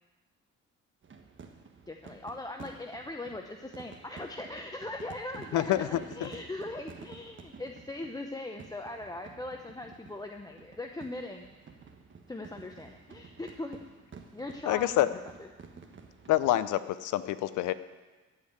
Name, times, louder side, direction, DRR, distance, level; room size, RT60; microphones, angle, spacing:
sound 1, 1.0-16.6, right 5 dB, 40° right, 1.3 m, -51 dB
voice 1, 1.9-11.6 12.3-13.8 14.3-15.5 15.7-16.0, left 2 dB, 10° left, 4 dB, 0.7 m, -40 dB
voice 2, 5.5-6.3 14.7-15.1 16.3-17.7, left 14 dB, 80° left, 14 dB, 0.6 m, -27 dB
15.0 x 5.0 x 8.7 m, 1.3 s
cardioid pair, 90°, 30 cm